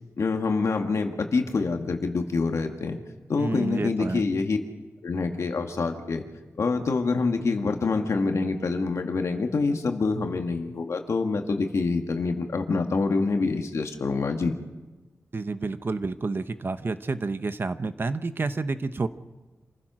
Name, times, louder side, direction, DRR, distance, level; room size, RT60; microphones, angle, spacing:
voice 1, 0.2-3.0 3.3-4.6 5.0-6.2 6.6-14.6, left 4 dB, 75° left, 4 dB, 2.0 m, -26 dB
voice 2, 3.4-4.2 15.3-19.1, right 3 dB, 45° right, 11 dB, 1.0 m, -29 dB
27.5 x 15.5 x 6.3 m, 1.1 s
wide cardioid pair, 95°, 5 cm